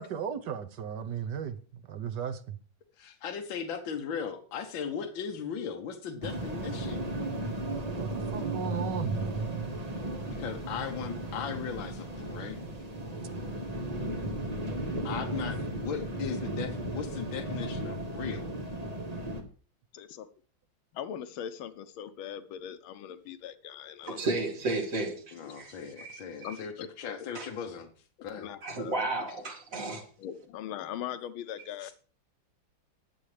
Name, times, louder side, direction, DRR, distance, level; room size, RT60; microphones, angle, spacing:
voice 1, 0.0-2.6 8.0-9.5, right 8 dB, 65° right, 1.4 m, -36 dB
voice 2, 3.0-7.0 10.3-12.6 15.0-18.5 25.3-27.9 28.2-28.5 31.8-31.9, left 7 dB, 70° left, 1.8 m, -37 dB
sound 1, 6.2-19.4, right 1 dB, 20° right, 1.3 m, -35 dB
voice 3, 19.9-20.3 20.9-24.3 25.4-25.5 26.4-27.2 28.2-29.0 30.2-31.9, left 10 dB, 90° left, 1.6 m, -40 dB
voice 4, 24.0-26.5 27.3-27.5 28.6-30.0, right 2 dB, 40° right, 2.6 m, -33 dB
20.5 x 7.1 x 3.3 m
omnidirectional pair, 2.2 m